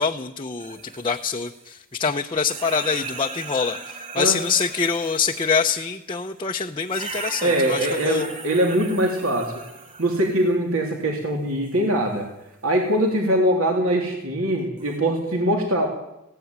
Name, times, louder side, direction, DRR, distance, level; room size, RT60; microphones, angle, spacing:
voice 1, 0.0-1.5 2.0-3.8 4.1-8.3, left 5 dB, 25° left, 2 dB, 0.8 m, -24 dB
sound 1, 0.6-2.2 2.4-5.8 6.9-10.5 11.7-11.8 14.8-15.0, right 4 dB, 35° right, 5.6 m, -38 dB
voice 2, 7.4-9.5 10.0-12.3 12.6-15.9, right 1 dB, 65° right, 1 dB, 3.3 m, -22 dB
19.0 x 17.0 x 9.5 m, 0.89 s
head